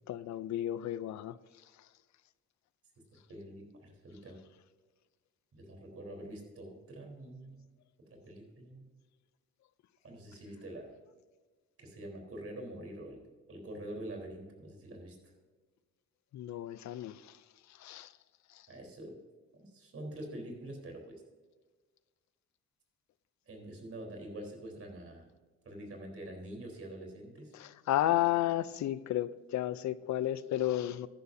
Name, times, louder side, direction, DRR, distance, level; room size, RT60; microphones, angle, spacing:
voice 1, 0.1-1.3 16.3-17.2 17.8-18.1 27.9-31.1, left 13 dB, 65° left, 0.5 m, -32 dB
voice 2, 3.1-4.4 5.5-7.6 8.1-8.9 10.0-10.9 11.8-15.3 18.7-19.2 19.5-21.2 23.5-25.3 25.6-27.5, right 1 dB, 50° right, 3.8 m, -46 dB
14.0 x 11.0 x 2.7 m
cardioid pair, 90°, 30 cm